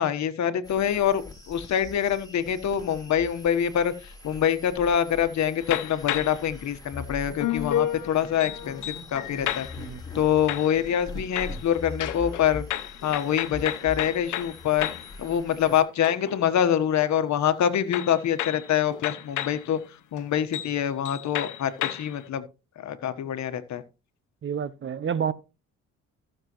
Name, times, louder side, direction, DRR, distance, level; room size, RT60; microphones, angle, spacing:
voice 1, 0.0-9.7 10.1-12.6 13.0-14.9 15.2-19.8 20.1-22.4 22.8-23.8, left 9 dB, 65° left, 1.3 m, -25 dB
sound 1, 0.6-15.8, left 3 dB, 10° left, 4.1 m, -42 dB
sound 2, 5.6-6.5 7.4-10.0 10.5-11.1 11.4-15.2 15.5-16.5 17.9-19.7 20.2-20.3 20.5-20.8 21.0-22.2, left 12 dB, 80° left, 0.9 m, -32 dB
voice 2, 24.4-25.3, right 7 dB, 40° right, 0.7 m, -29 dB
15.0 x 6.7 x 3.1 m
cardioid pair, 90°, 30 cm